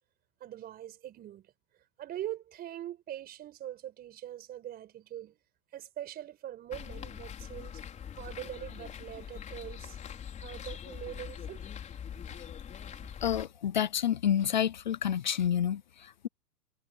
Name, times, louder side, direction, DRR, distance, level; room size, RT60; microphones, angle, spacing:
voice 1, 0.4-1.5 2.0-5.4 5.7-7.8 8.2-10.0 10.4-11.7, right 12 dB, 20° right, 5.0 m, -42 dB
sound 1, 6.7-13.4, left 8 dB, 15° left, 5.0 m, -43 dB
voice 2, 13.2-16.3, left 9 dB, 30° left, 0.4 m, -29 dB
hypercardioid pair, 155°, 48 cm